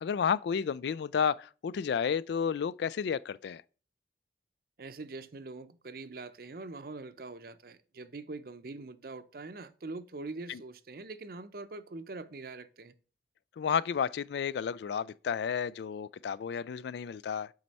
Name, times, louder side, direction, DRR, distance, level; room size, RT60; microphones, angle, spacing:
voice 1, 0.0-3.6 10.5-10.6 13.6-17.5, left 7 dB, 70° left, 0.3 m, -31 dB
voice 2, 4.8-12.9, right 3 dB, 55° right, 0.6 m, -43 dB
7.7 x 5.3 x 4.2 m
head